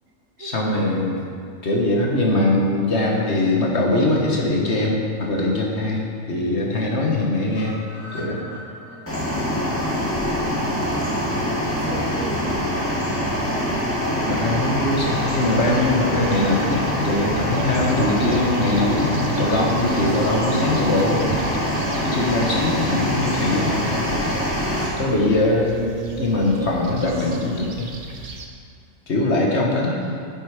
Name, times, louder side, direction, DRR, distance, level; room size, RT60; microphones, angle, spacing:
voice 1, 0.4-1.3 1.6-7.7 8.1-8.4 14.3-21.3 22.0-24.3 25.0-27.9 29.1-30.1, left 2 dB, 55° left, -2 dB, 1.7 m, -22 dB
sound 1, 7.5-11.6 11.9-12.0 12.3-12.4 12.7-12.8, equal, 30° left, 3.2 m, -42 dB
voice 2, 8.9-9.2 10.2-12.8 24.7-25.1, right 3 dB, 80° right, 2 dB, 1.5 m, -38 dB
sound 2, 9.1-24.9, equal, 10° left, 2.0 m, -24 dB
sound 3, 15.6-28.5, right 3 dB, 40° right, 0.8 m, -37 dB
10.0 x 7.9 x 5.0 m, 2.3 s
omnidirectional pair, 1.4 m